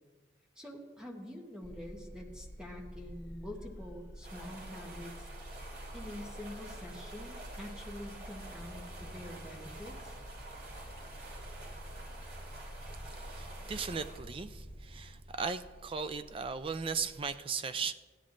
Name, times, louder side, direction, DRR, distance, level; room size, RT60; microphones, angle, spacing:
voice 1, 0.5-5.3 5.9-10.1, left 1 dB, 5° right, -1 dB, 1.1 m, -46 dB
sound 1, 1.6-17.3, equal, 60° left, 1.1 m, -48 dB
sound 2, 4.2-14.2, right 2 dB, 55° right, 2.8 m, -49 dB
sound 3, 8.5-15.2, equal, 80° left, 1.1 m, -56 dB
voice 2, 13.2-17.9, right 5 dB, 30° right, 10 dB, 0.4 m, -37 dB
16.0 x 10.5 x 2.5 m, 1.4 s
head